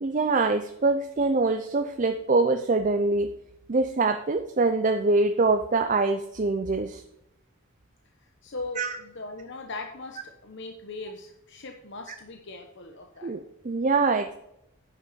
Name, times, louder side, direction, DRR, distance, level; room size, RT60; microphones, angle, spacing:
voice 1, 0.0-3.3 3.7-7.0 8.8-8.9 13.2-14.3, right 3 dB, 35° right, 8 dB, 0.5 m, -24 dB
voice 2, 8.4-13.4, left 2 dB, 60° left, 4 dB, 1.0 m, -39 dB
9.8 x 6.8 x 5.2 m, 0.83 s
head